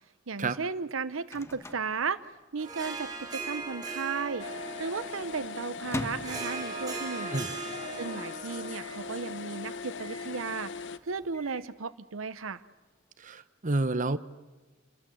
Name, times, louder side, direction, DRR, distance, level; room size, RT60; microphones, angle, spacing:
voice 1, 0.3-2.2 2.5-4.5 4.8-7.5 7.9-10.7 11.0-12.6, right 5 dB, 80° right, 13 dB, 0.8 m, -35 dB
Microwave oven, 0.7-2.9 3.1-3.2 3.5-4.0 4.5-7.2 7.6-7.7 7.9-8.0 8.7-9.1 10.0-10.4 11.1-11.7, left 1 dB, 15° left, 1.3 m, -42 dB
Harp, 2.6-11.2, right 4 dB, 20° right, 4.2 m, -40 dB
sound 1, 4.4-11.0, left 5 dB, 60° left, 0.9 m, -40 dB
voice 2, 13.2-14.2, right 2 dB, 40° right, 11 dB, 1.0 m, -29 dB
29.0 x 21.0 x 7.8 m, 1.3 s
head